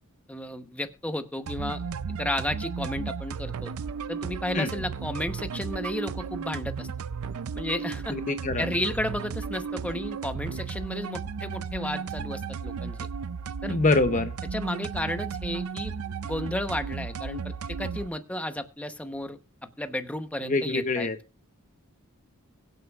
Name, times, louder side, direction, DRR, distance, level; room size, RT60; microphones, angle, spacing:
voice 1, 0.3-1.8 2.2-3.7 4.1-6.9 7.5-8.2 8.6-13.1 13.6-13.7 14.5-15.9 16.2-19.4 19.8-21.1, left 1 dB, 5° left, 8 dB, 0.9 m, -33 dB
sound 1, 1.5-18.1, right 5 dB, 80° right, 0.5 m, -34 dB
voice 2, 8.1-8.7 13.7-14.3 20.4-21.2, left 3 dB, 35° left, 9 dB, 0.7 m, -25 dB
22.5 x 7.9 x 2.4 m, 0.30 s
head